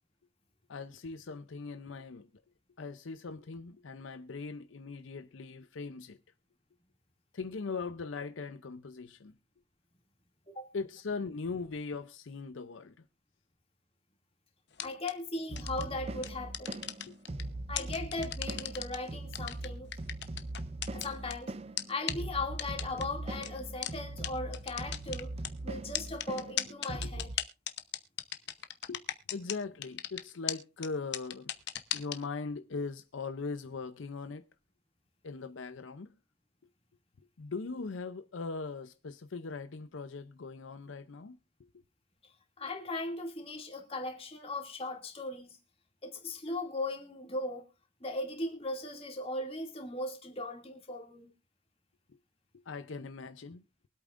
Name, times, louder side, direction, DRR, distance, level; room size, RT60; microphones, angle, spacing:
voice 1, 0.7-2.3 2.8-6.2 7.3-9.4 10.7-12.9 17.1-17.2 26.9-27.0 28.9-29.0 29.3-31.5 31.9-34.4 35.2-36.1 37.4-41.4 52.7-53.6, left 4 dB, 75° left, 0.6 m, -40 dB
sound 1, 14.7-15.1 15.6-15.8 16.2-17.4 17.8-19.0 19.3-21.3 21.8-21.9 22.1-22.2 22.6-23.0 23.4-23.5 23.8-23.9 24.2-24.3 24.5-25.5 25.9-29.6 29.8-30.2 30.5-30.6 30.8-30.9 31.1-32.2, left 11 dB, 60° left, 0.9 m, -35 dB
voice 2, 14.8-16.8 17.7-19.9 20.9-21.5 21.9-25.3 25.6-27.3 42.2-45.6 46.0-47.6 48.0-51.3, left 2 dB, 30° left, 2.4 m, -38 dB
sound 2, 15.5-27.4, right 2 dB, 30° right, 0.5 m, -41 dB
23.5 x 8.4 x 2.5 m
head